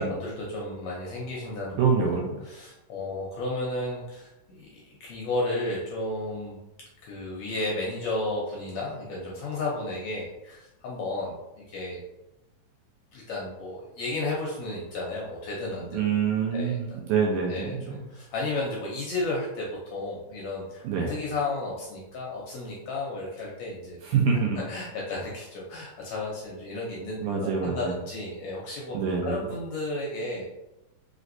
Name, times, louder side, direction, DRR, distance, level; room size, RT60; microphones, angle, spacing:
voice 1, 0.0-1.8 2.4-6.6 7.0-12.0 13.1-16.0 16.5-16.8 17.5-24.0 24.7-27.2 27.6-28.9 29.2-30.5, left 2 dB, 80° left, -4 dB, 1.6 m, -33 dB
voice 2, 1.8-2.4 15.9-18.0 20.8-21.1 24.0-24.6 27.2-28.0 28.9-29.4, right 6 dB, 80° right, 0 dB, 1.9 m, -26 dB
5.0 x 3.2 x 2.6 m, 0.96 s
omnidirectional pair, 3.9 m